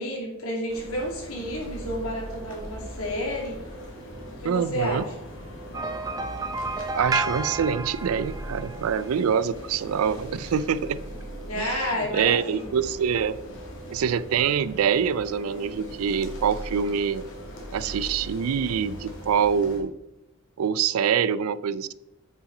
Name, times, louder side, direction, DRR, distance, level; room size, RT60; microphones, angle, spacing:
voice 1, 0.0-3.6 4.4-5.1 11.4-12.8, equal, 85° left, 0 dB, 2.4 m, -31 dB
sound 1, 0.7-19.8, equal, 60° left, 1.9 m, -40 dB
voice 2, 4.4-5.0 6.9-11.0 11.5-13.4 13.9-17.2 17.7-19.9 20.6-21.9, right 7 dB, 80° right, 17 dB, 0.4 m, -25 dB
sound 2, 5.7-9.1, right 2 dB, 15° right, 0.4 m, -31 dB
8.4 x 5.8 x 3.8 m, 0.91 s
head